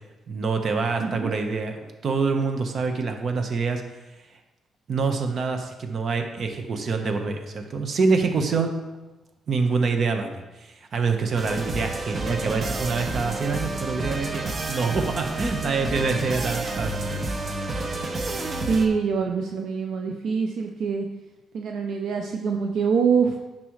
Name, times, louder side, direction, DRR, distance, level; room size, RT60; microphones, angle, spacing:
voice 1, 0.3-3.8 4.9-8.7 9.5-17.3, right 4 dB, 50° right, 5 dB, 1.1 m, -26 dB
voice 2, 1.0-1.3 18.6-21.1 21.5-23.4, right 5 dB, 75° right, 3 dB, 0.6 m, -24 dB
sound 1, 11.4-18.9, right 2 dB, 35° right, 1.1 m, -29 dB
10.0 x 5.9 x 3.2 m, 1.1 s
cardioid pair, 90°, 0 cm